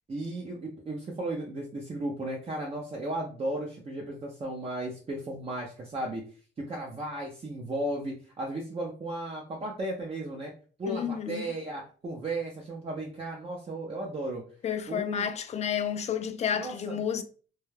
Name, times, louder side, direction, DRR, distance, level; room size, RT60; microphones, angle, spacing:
voice 1, 0.1-6.2 6.6-10.5 10.8-14.4 14.9-15.3 16.5-17.0, right 1 dB, 30° right, 0.6 m, -35 dB
voice 2, 10.9-11.5 14.6-17.2, left 8 dB, 35° left, 0.3 m, -31 dB
2.2 x 2.1 x 3.2 m
cardioid pair, 90°, 20 cm